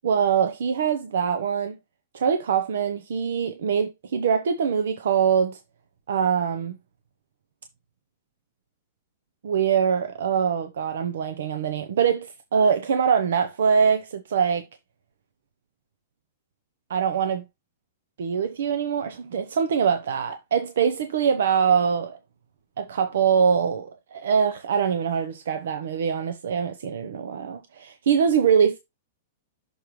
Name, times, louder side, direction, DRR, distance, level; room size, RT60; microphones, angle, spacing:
voice 1, 0.0-1.8 2.1-5.6 6.1-6.8 9.4-14.7 16.9-17.4 18.2-22.2 22.8-28.8, right 7 dB, 80° right, 0.7 m, -23 dB
6.3 x 3.1 x 5.1 m
hypercardioid pair, 150°, 0 cm